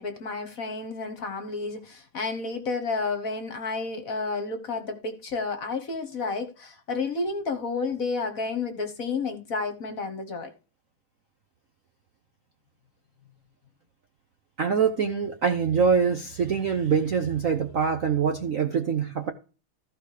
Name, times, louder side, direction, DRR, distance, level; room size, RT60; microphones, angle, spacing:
voice 1, 0.0-10.5, left 4 dB, 45° left, 1.5 m, -31 dB
voice 2, 14.6-19.3, right 6 dB, 55° right, 0.9 m, -24 dB
14.5 x 4.9 x 5.0 m
omnidirectional pair, 2.3 m